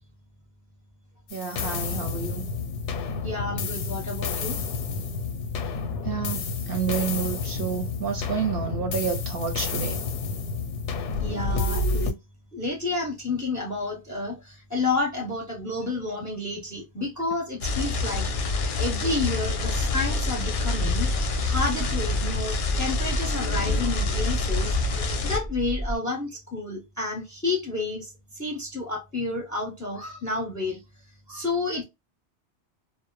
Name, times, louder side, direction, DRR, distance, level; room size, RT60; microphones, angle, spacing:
sound 1, 1.3-12.1, left 4 dB, 90° left, 0.9 m, -30 dB
voice 1, 1.3-2.5 6.0-10.0, right 7 dB, 60° right, 0.7 m, -30 dB
voice 2, 3.2-4.6 11.2-12.1 12.5-18.2 18.8-21.1 21.4-24.7 25.2-30.8 31.3-31.8, left 3 dB, 20° left, 0.6 m, -30 dB
sound 2, 17.6-25.4, left 3 dB, 60° left, 0.6 m, -27 dB
sound 3, 19.4-26.0, right 1 dB, 30° right, 0.3 m, -31 dB
2.2 x 2.0 x 2.9 m
omnidirectional pair, 1.2 m